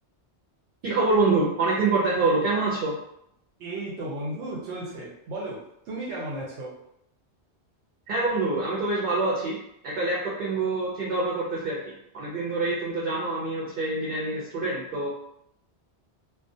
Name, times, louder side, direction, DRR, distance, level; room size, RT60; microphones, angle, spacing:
voice 1, 0.8-3.0 8.1-9.6 9.8-15.1, right 3 dB, 60° right, -5 dB, 0.7 m, -26 dB
voice 2, 3.6-6.7, right 1 dB, 90° right, -5 dB, 0.9 m, -34 dB
2.3 x 2.1 x 2.6 m, 0.76 s
omnidirectional pair, 1.1 m